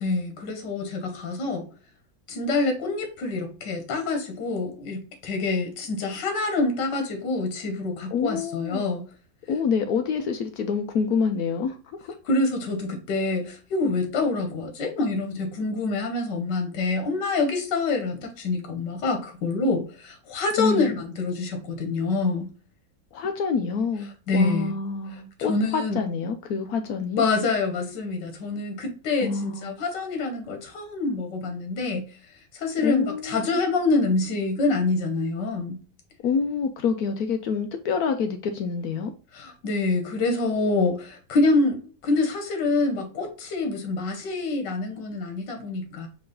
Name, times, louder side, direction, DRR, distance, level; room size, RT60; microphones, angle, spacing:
voice 1, 0.0-1.7 2.3-9.1 12.3-22.5 24.3-24.8 25.1-25.2 25.5-26.0 27.1-32.1 32.5-35.8 39.3-46.1, left 3 dB, 85° left, 1.7 m, -26 dB
voice 2, 8.1-8.8 9.5-11.8 12.0-12.1 20.6-20.9 23.1-27.2 29.2-29.7 32.8-33.6 36.2-39.1, left 5 dB, 70° left, 1.0 m, -27 dB
4.7 x 3.1 x 3.7 m
omnidirectional pair, 1.8 m